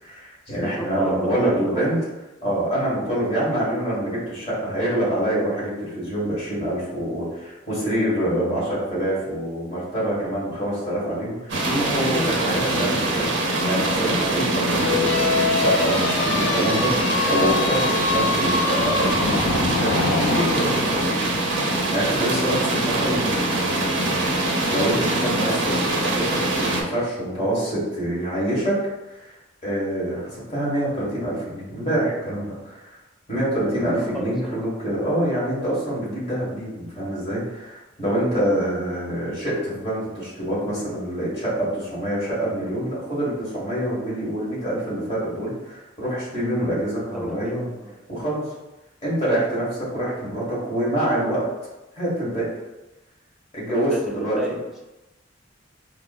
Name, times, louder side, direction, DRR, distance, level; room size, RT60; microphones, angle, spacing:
voice 1, 0.0-2.0 2.4-13.3 13.6-28.8 29.6-32.8 33.3-47.7 48.1-48.4 49.0-51.5 51.9-52.5 53.5-54.4, right 1 dB, 30° left, -8 dB, 1.4 m, -26 dB
voice 2, 0.6-1.9 12.2-12.5 34.0-34.7 38.3-38.6 47.1-47.9 53.7-54.8, right 1 dB, ahead, -2 dB, 0.3 m, -33 dB
sound 1, 11.5-26.8, right 2 dB, 65° right, 0.6 m, -23 dB
sound 2, 14.8-21.0, left 3 dB, 90° left, 0.4 m, -24 dB
4.4 x 2.1 x 2.4 m, 1.1 s
head